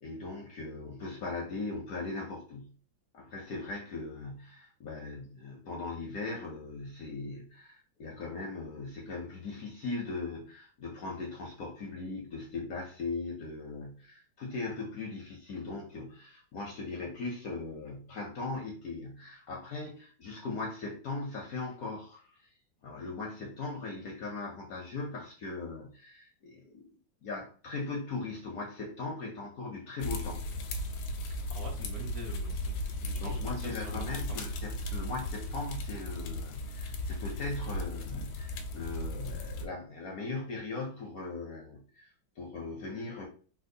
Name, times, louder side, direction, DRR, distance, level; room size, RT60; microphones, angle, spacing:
voice 1, 0.0-2.8 3.1-22.2 22.8-26.9 27.2-30.4 33.2-43.2, left 3 dB, 65° left, 0 dB, 0.9 m, -39 dB
sound 1, 30.0-39.7, left 1 dB, 90° left, 1.4 m, -36 dB
voice 2, 31.2-34.4, right 2 dB, 55° right, -2 dB, 1.3 m, -46 dB
4.3 x 2.3 x 2.7 m, 0.40 s
omnidirectional pair, 2.2 m